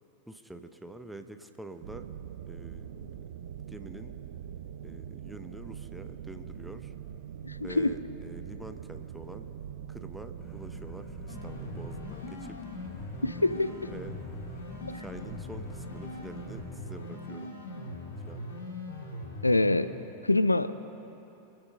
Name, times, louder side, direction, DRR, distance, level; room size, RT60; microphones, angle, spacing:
voice 1, 0.3-2.1 2.5-3.2 3.7-4.2 4.8-6.9 7.6-9.5 9.9-12.6 13.5-14.1 14.9-17.5 18.2-18.5, right 1 dB, 5° right, 8 dB, 0.8 m, -46 dB
sound 1, 1.8-12.1, right 9 dB, 60° right, 0.6 m, -43 dB
voice 2, 7.4-7.9 13.2-13.9 14.9-15.0 19.4-19.9 20.2-20.7, left 2 dB, 85° left, 13 dB, 0.5 m, -25 dB
sound 2, 10.4-16.8, left 4 dB, 20° left, 1.2 m, -48 dB
sound 3, 11.3-19.8, left 1 dB, 65° left, 2.3 m, -41 dB
25.5 x 8.9 x 5.7 m, 3.0 s
figure-of-eight pair, 90°, 0 cm